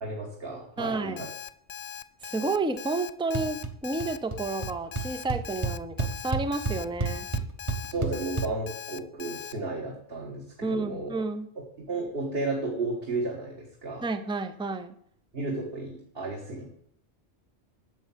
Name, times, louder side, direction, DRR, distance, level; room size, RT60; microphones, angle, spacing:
voice 1, 0.0-1.3 7.8-11.1 11.8-14.1 15.3-16.8, right 2 dB, 55° right, -2 dB, 1.9 m, -33 dB
voice 2, 0.8-1.2 2.2-7.3 10.6-11.5 14.0-14.9, right 3 dB, 10° right, 10 dB, 0.3 m, -31 dB
Alarm, 1.2-9.5, left 8 dB, 65° left, 0.3 m, -40 dB
sound 1, 3.3-3.7 4.0-4.4 4.6-4.7 5.0-8.5, right 3 dB, 30° right, 1.0 m, -29 dB
8.8 x 7.0 x 7.4 m, 0.67 s
omnidirectional pair, 1.2 m